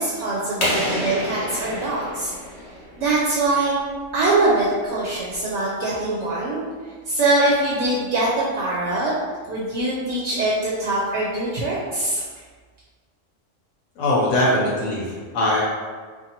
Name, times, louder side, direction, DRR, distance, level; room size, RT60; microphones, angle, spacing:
voice 1, 0.0-2.3 3.0-3.7 4.1-6.6 7.1-9.1 9.5-12.2, right 2 dB, 70° right, -5 dB, 0.9 m, -23 dB
sound 1, 0.6-3.3, left 1 dB, 65° left, 1.0 m, -28 dB
voice 2, 14.0-15.6, left 1 dB, 90° left, -5 dB, 1.0 m, -21 dB
2.6 x 2.4 x 2.7 m, 1.5 s
omnidirectional pair, 1.2 m